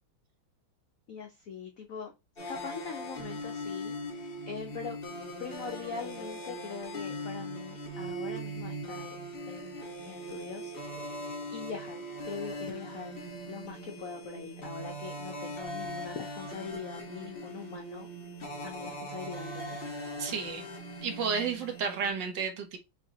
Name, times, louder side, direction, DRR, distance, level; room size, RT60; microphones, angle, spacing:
voice 1, 1.1-2.1 2.5-5.0 5.4-9.2 9.5-11.2 11.5-13.2 13.5-18.1 18.6-19.8, left 6 dB, 85° left, 0.7 m, -42 dB
sound 1, 2.4-22.1, equal, 40° left, 0.9 m, -40 dB
voice 2, 20.2-20.7 21.0-22.8, right 6 dB, 65° right, 1.4 m, -32 dB
5.7 x 2.8 x 2.7 m
omnidirectional pair, 2.3 m